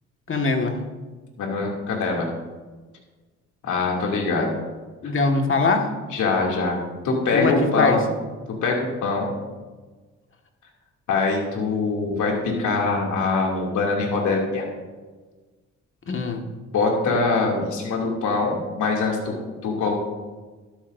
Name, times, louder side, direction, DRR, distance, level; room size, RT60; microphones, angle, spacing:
voice 1, 0.3-0.8 5.0-5.9 7.3-8.0 16.1-16.4, left 4 dB, 40° left, 3 dB, 1.8 m, -22 dB
voice 2, 1.4-2.3 3.6-4.6 6.1-6.8 7.0-8.1 8.6-9.3 11.1-14.7 16.7-19.3 19.6-19.9, left 3 dB, 80° left, -1 dB, 2.7 m, -23 dB
12.5 x 12.5 x 2.7 m, 1.3 s
cardioid pair, 90°, 30 cm